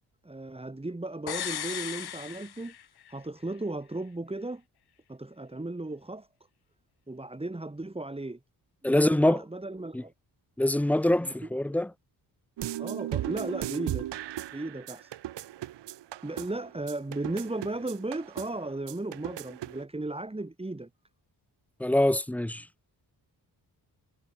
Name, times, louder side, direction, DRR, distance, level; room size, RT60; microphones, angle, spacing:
voice 1, 0.2-2.7 3.1-4.6 5.1-6.3 7.1-8.4 8.8-10.1 11.2-11.8 12.8-14.1 14.5-15.1 16.2-20.9, right 2 dB, 15° right, 4.2 m, -36 dB
sound 1, 1.3-3.2 3.5-3.6, left 10 dB, 65° left, 1.4 m, -36 dB
voice 2, 8.8-9.4 9.9-10.0 10.6-11.9 21.8-22.7, left 1 dB, 5° left, 0.6 m, -24 dB
sound 2, 12.6-19.8, right 13 dB, 80° right, 0.9 m, -37 dB
wide cardioid pair, 115°, 41 cm